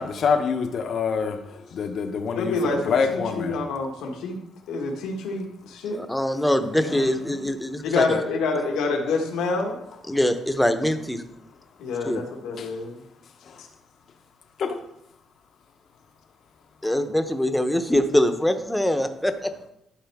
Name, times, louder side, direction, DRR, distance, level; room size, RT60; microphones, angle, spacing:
voice 1, 0.0-1.4 1.7-3.5 6.8-7.4 14.6-14.8, left 5 dB, 60° left, 0.8 m, -26 dB
voice 2, 2.3-4.4 4.7-6.0 7.8-9.8 11.8-13.0 13.6-13.7, left 3 dB, 90° left, 1.5 m, -27 dB
voice 3, 5.9-8.2 10.1-11.2 12.1-12.2 16.8-19.3, left 1 dB, 5° left, 0.8 m, -23 dB
11.5 x 5.1 x 3.5 m
cardioid pair, 90°, 0 cm